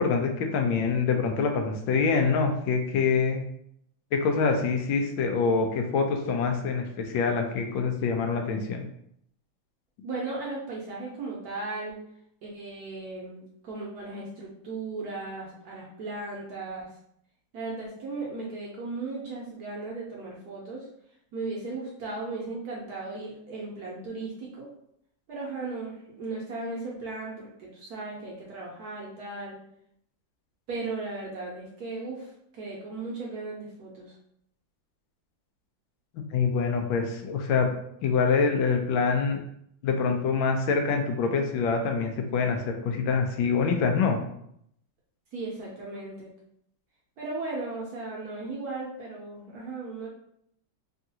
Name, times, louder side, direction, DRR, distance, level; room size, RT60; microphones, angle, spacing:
voice 1, 0.0-3.4 4.1-8.8 36.3-37.7 38.0-39.4 39.8-44.2, left 5 dB, 80° left, 4 dB, 1.3 m, -25 dB
voice 2, 10.0-12.0 12.4-16.9 17.5-20.9 21.3-24.7 25.3-29.6 30.7-34.1 45.3-46.3 47.2-50.1, right 3 dB, 65° right, -4 dB, 1.0 m, -36 dB
3.6 x 2.4 x 2.7 m, 0.71 s
omnidirectional pair, 2.1 m